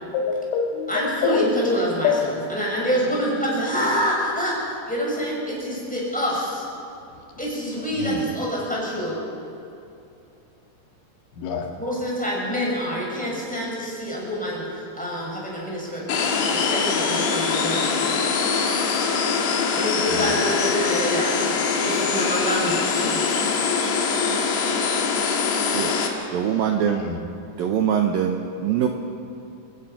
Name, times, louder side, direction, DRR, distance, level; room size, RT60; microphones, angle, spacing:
voice 1, 0.1-1.8 2.0-2.2 8.0-8.2 11.4-11.7 20.1-20.3 26.9-27.1, left 6 dB, 90° left, 1 dB, 4.4 m, -25 dB
voice 2, 0.9-6.6 7.4-9.2 11.8-17.9 19.7-23.4, equal, ahead, -5 dB, 6.1 m, -26 dB
sound 1, 16.1-26.1, left 5 dB, 65° left, 3.8 m, -23 dB
voice 3, 26.3-27.0 27.6-28.9, right 9 dB, 85° right, 4 dB, 2.1 m, -22 dB
29.0 x 16.5 x 5.9 m, 2.6 s
omnidirectional pair, 5.4 m